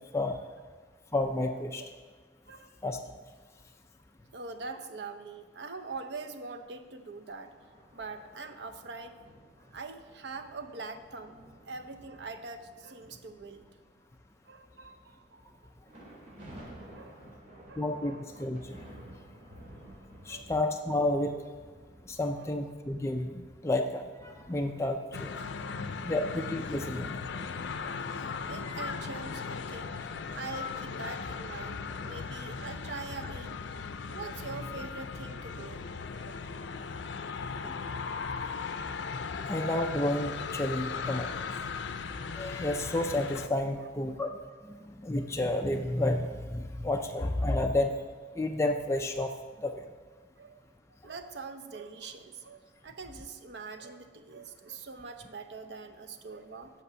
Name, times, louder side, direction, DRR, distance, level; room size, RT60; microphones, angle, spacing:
voice 1, 1.1-1.8 2.8-3.0 17.8-18.8 20.3-21.3 22.1-25.3 26.0-27.1 37.6-37.7 39.5-41.3 42.4-44.3 44.7-47.9 48.4-49.3 49.6-49.9, left 1 dB, 15° left, 3 dB, 0.4 m, -31 dB
voice 2, 2.4-2.8 4.3-7.5 7.9-9.2 9.7-11.4 11.6-13.6 14.5-15.5 16.9-17.2 17.7-18.2 20.3-20.5 22.3-22.8 25.7-26.1 27.3-27.5 28.1-29.9 30.3-33.6 34.1-35.9 36.2-36.5 43.8-44.2 44.7-44.9 50.4-50.6 51.0-56.7, right 4 dB, 70° right, 7 dB, 0.7 m, -43 dB
sound 1, 7.4-14.1 14.6-26.3, right 1 dB, 45° right, 2.8 m, -54 dB
sound 2, 25.1-43.5, left 5 dB, 85° left, 0.5 m, -37 dB
8.2 x 5.9 x 6.8 m, 1.5 s
head